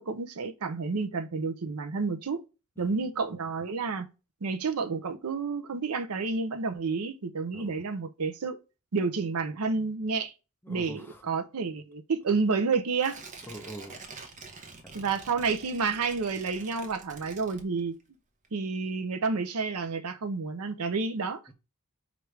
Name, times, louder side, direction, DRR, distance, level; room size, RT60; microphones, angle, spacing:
voice 1, 0.0-2.4 2.8-4.1 4.4-8.6 8.9-10.3 10.7-13.2 14.9-18.0 18.5-21.5, right 4 dB, 85° right, 0.6 m, -30 dB
voice 2, 7.5-7.8 10.6-11.3 13.5-14.0 14.8-15.0 21.5-21.6, right 1 dB, 10° left, 0.6 m, -45 dB
Tearing, 13.0-18.1 18.4-18.5, right 4 dB, 35° right, 0.7 m, -47 dB
4.6 x 2.6 x 3.2 m
head